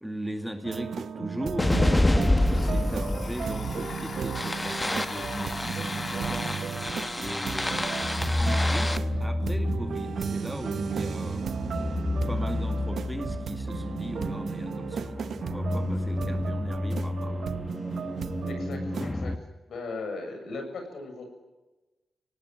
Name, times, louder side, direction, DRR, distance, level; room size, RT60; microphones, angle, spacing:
voice 1, 0.0-6.6 7.2-8.1 8.4-11.4 12.3-17.5, right 1 dB, 5° right, 6 dB, 2.2 m, -38 dB
sound 1, 0.6-19.1, right 7 dB, 65° right, 0.8 m, -35 dB
Domestic sounds home sounds, 1.4-1.5 1.8-8.4, left 4 dB, 45° left, 3.5 m, -41 dB
sound 2, 1.6-19.4, left 1 dB, 15° left, 1.1 m, -29 dB
voice 2, 18.5-19.3 19.7-21.3, left 3 dB, 70° left, 4 dB, 7.2 m, -38 dB
25.5 x 18.5 x 9.6 m, 1.1 s
cardioid pair, 100°, 0 cm